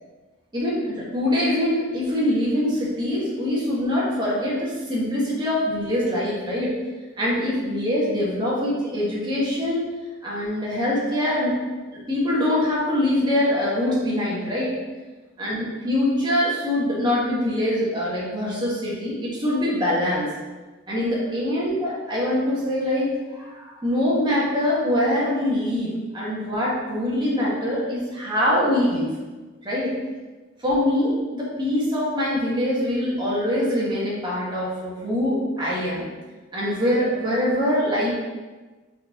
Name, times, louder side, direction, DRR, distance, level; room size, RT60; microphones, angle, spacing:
voice 1, 0.5-6.7 7.2-9.9 10.2-11.5 11.9-14.8 15.4-20.3 20.9-23.1 23.4-29.1 29.6-30.0 30.6-36.1 36.5-38.1, left 1 dB, 25° right, -7 dB, 1.9 m, -23 dB
5.8 x 4.5 x 4.0 m, 1.3 s
head